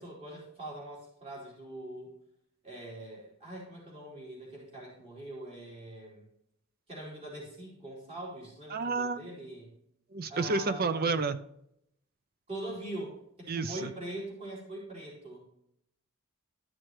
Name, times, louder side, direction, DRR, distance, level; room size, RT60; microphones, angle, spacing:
voice 1, 0.0-2.1 2.6-6.2 6.9-9.7 10.3-11.3 12.5-15.4, right 1 dB, 30° right, -4 dB, 3.8 m, -43 dB
voice 2, 8.7-9.2 10.1-11.4 13.5-13.9, right 4 dB, 45° right, 12 dB, 0.6 m, -30 dB
12.5 x 6.2 x 3.1 m, 0.74 s
head